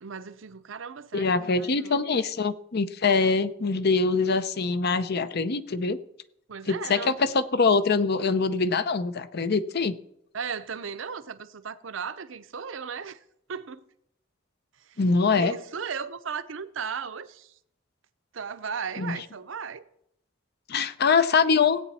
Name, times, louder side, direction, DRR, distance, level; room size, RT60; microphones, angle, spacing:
voice 1, 0.0-2.1 3.0-3.4 6.5-7.2 10.3-13.2 13.5-13.8 14.8-15.0 15.4-17.5 18.3-19.8, right 6 dB, 70° right, 0.7 m, -36 dB
voice 2, 1.1-6.0 6.7-9.9 15.0-15.5 19.0-19.2 20.7-21.8, left 4 dB, 55° left, 0.6 m, -24 dB
17.0 x 8.5 x 4.2 m
head